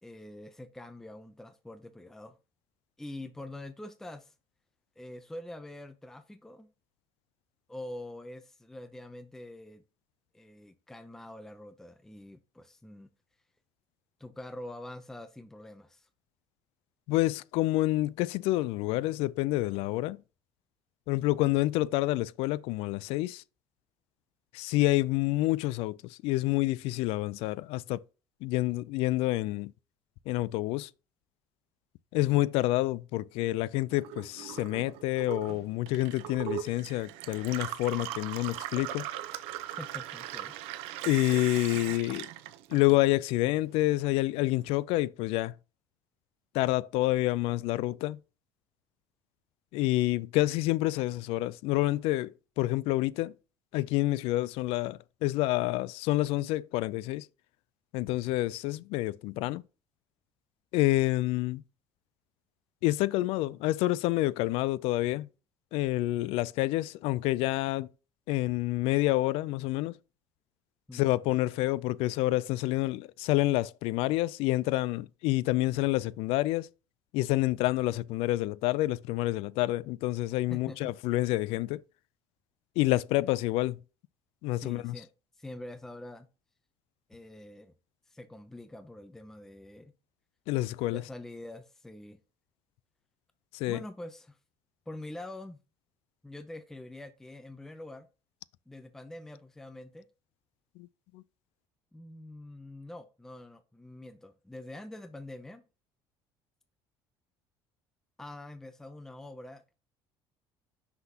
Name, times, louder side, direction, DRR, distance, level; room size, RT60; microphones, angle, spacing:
voice 1, 0.0-2.4 3.0-4.3 5.0-6.7 7.7-9.8 10.3-13.1 14.2-16.1 39.8-40.5 70.9-71.0 80.5-80.9 84.5-85.1 85.4-86.3 87.1-87.7 88.1-89.9 90.9-92.2 93.7-94.4 94.9-95.6 96.2-98.1 98.7-100.1 101.9-105.6 108.2-109.7, left 1 dB, 5° left, 0.5 m, -45 dB
voice 2, 17.1-20.2 21.1-23.4 24.5-28.0 28.4-29.7 30.3-30.9 32.1-39.1 41.1-42.3 42.7-45.5 46.5-48.2 49.7-53.3 53.7-57.3 57.9-59.6 60.7-61.6 62.8-65.3 65.7-67.9 68.3-70.0 70.9-76.7 77.1-81.8 82.8-83.8 84.4-84.9 90.5-91.0 93.5-93.8 100.8-100.9 101.1-101.2, left 18 dB, 75° left, 0.3 m, -28 dB
Gurgling / Water tap faucet / Sink (filling or washing), 33.9-43.4 43.7-44.6, right 13 dB, 85° right, 0.7 m, -39 dB
5.9 x 5.7 x 2.8 m
cardioid pair, 135°, 10 cm